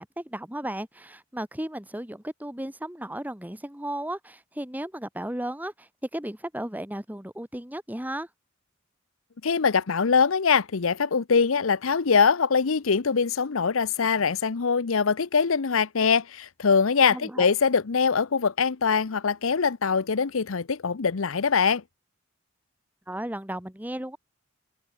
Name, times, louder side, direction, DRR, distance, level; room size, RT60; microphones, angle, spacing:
voice 1, 0.0-8.3 17.1-17.5 23.1-24.2, right 1 dB, 10° right, 1.7 m, -35 dB
voice 2, 9.4-21.8, left 5 dB, 75° left, 0.7 m, -23 dB
open air
head